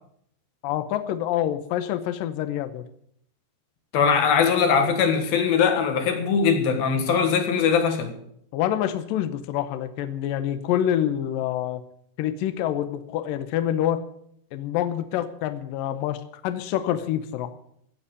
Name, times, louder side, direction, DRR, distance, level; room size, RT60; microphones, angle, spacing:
voice 1, 0.6-2.8 8.5-11.8 12.2-14.0 14.5-16.2 16.4-17.5, left 11 dB, 85° left, 10 dB, 2.0 m, -26 dB
voice 2, 3.9-8.1, left 6 dB, 60° left, 7 dB, 3.2 m, -21 dB
16.5 x 7.2 x 8.3 m, 0.68 s
omnidirectional pair, 5.1 m